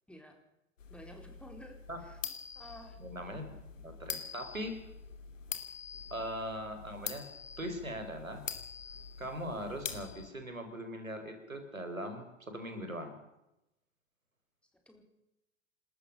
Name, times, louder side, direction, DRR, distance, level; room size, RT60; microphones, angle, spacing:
voice 1, 0.1-0.4 0.9-1.7 2.0-2.2 2.5-3.0 14.9-15.0, equal, 5° left, 3 dB, 4.3 m, -51 dB
sound 1, 0.8-10.3, left 6 dB, 70° left, 2.8 m, -45 dB
voice 2, 3.0-3.5 3.7-4.9 6.1-7.3 7.6-8.5 9.2-13.2, equal, 85° right, 7 dB, 4.5 m, -40 dB
27.5 x 13.5 x 6.9 m, 0.89 s
figure-of-eight pair, 95°, 39 cm